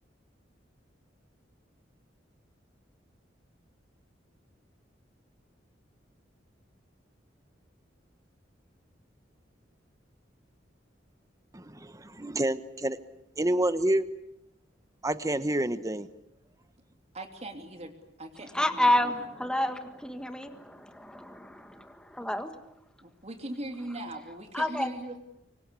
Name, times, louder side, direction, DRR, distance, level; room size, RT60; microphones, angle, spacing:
voice 1, 11.5-13.0 13.4-14.1 15.0-16.1, right 1 dB, 20° right, 12 dB, 1.1 m, -28 dB
voice 2, 17.1-17.9 18.2-19.1 23.0-25.2, right 1 dB, 35° right, 5 dB, 3.0 m, -40 dB
voice 3, 18.5-22.5 24.5-24.9, left 1 dB, 5° left, 8 dB, 1.6 m, -29 dB
25.5 x 25.0 x 8.4 m, 0.85 s
head